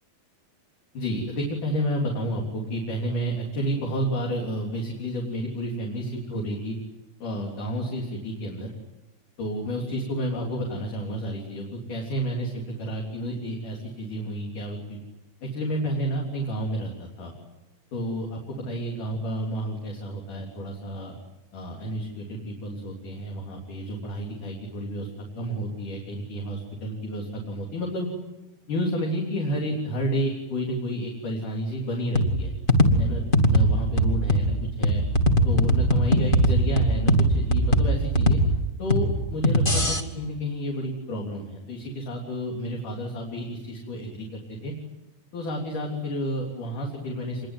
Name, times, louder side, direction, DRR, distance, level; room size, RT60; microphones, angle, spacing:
voice 1, 0.9-6.8 7.2-8.7 9.4-15.0 15.4-17.3 17.9-21.2 21.5-25.1 25.4-28.1 28.7-32.5 33.0-35.0 35.5-38.4 38.8-44.7 45.3-47.4, equal, 60° left, 0 dB, 5.2 m, -30 dB
sound 1, 32.1-40.0, equal, 20° left, 1.9 m, -21 dB
27.0 x 22.5 x 9.4 m, 1.0 s
omnidirectional pair, 4.1 m